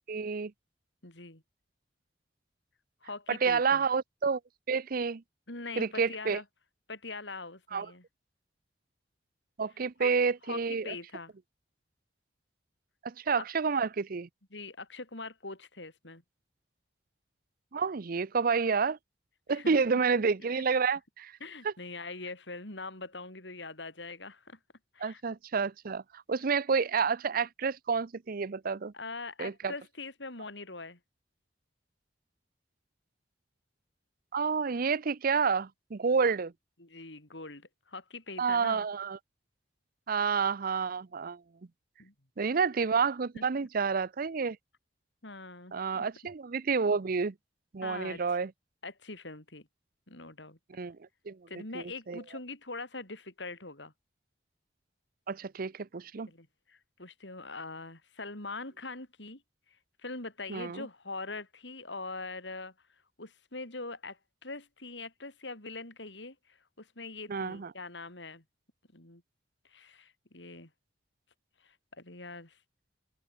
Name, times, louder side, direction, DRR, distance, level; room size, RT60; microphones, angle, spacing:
voice 1, 0.1-0.5 3.3-4.4 4.7-5.2 5.8-6.4 7.7-7.9 9.6-10.9 13.0-14.3 17.7-19.0 19.5-21.3 21.6-21.7 25.0-28.9 29.4-29.7 34.3-36.5 38.4-39.2 40.1-41.4 42.4-44.6 45.7-47.3 47.7-48.5 50.7-51.0 51.3-52.2 55.3-56.3 60.5-60.9 67.3-67.7, right 5 dB, 50° right, 0.6 m, -29 dB
voice 2, 1.0-1.4 3.0-3.9 5.5-6.4 6.9-8.0 10.0-10.1 10.4-11.3 13.4-13.5 14.5-16.2 19.5-19.8 20.5-20.6 21.4-24.6 24.9-25.2 28.9-31.0 36.8-38.9 42.0-42.1 43.3-43.4 45.2-46.1 47.8-48.4 48.8-49.7 50.1-50.6 51.5-53.9 56.3-59.4 60.0-62.7 63.2-68.4 68.9-69.2 69.6-70.7 71.6-72.6, left 3 dB, 75° left, 5.3 m, -43 dB
open air
head